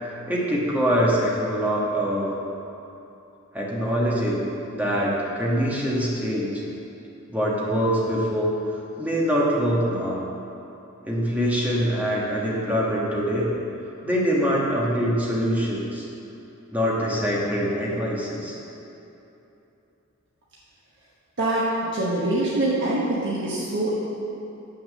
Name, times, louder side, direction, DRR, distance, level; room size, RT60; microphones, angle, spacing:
voice 1, 0.3-2.3 3.5-4.4 4.7-6.6 7.3-8.6 9.0-10.2 11.1-13.5 14.0-16.1 16.7-18.6, equal, 10° right, -5 dB, 1.3 m, -24 dB
voice 2, 21.9-24.0, right 2 dB, 60° right, -7 dB, 1.2 m, -24 dB
7.1 x 6.4 x 6.5 m, 2.9 s
head